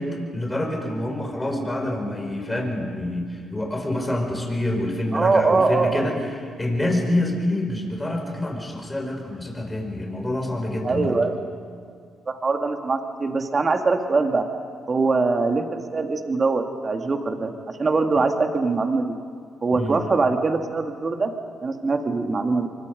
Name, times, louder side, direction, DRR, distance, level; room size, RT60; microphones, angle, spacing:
voice 1, 0.0-6.3 6.6-11.2 19.8-20.0, left 1 dB, 15° left, 1 dB, 5.1 m, -26 dB
voice 2, 5.1-6.0 10.8-11.4 12.3-14.4 14.9-19.1 19.6-21.3 21.6-22.7, right 3 dB, 40° right, 5 dB, 2.3 m, -22 dB
24.5 x 22.5 x 5.3 m, 2.1 s
supercardioid pair, 65°, 0 cm